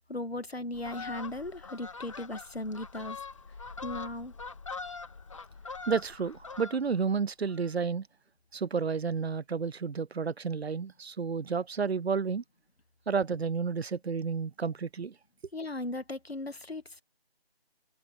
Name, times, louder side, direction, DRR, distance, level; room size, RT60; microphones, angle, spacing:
voice 1, 0.0-3.2 3.8-4.3 15.5-17.0, left 2 dB, 75° left, 2.1 m, -37 dB
Fowl, 0.7-7.1 7.4-7.7, left 4 dB, 30° left, 2.5 m, -43 dB
voice 2, 5.9-8.1 8.5-12.4 13.1-15.1, right 5 dB, 80° right, 0.6 m, -31 dB
open air
figure-of-eight pair, 160°, 31 cm